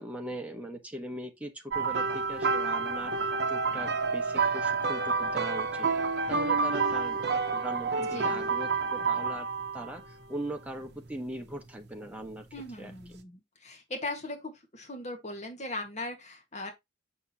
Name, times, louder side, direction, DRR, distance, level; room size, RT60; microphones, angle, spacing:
voice 1, 0.0-5.9 6.3-9.5 9.7-12.4 12.8-12.9, right 1 dB, 5° right, 1.3 m, -40 dB
sound 1, 1.7-10.0 10.8-11.1 12.9-13.0, right 4 dB, 55° right, 0.8 m, -29 dB
voice 2, 8.1-8.4 12.5-16.7, left 2 dB, 35° left, 1.6 m, -39 dB
6.2 x 6.2 x 2.9 m
head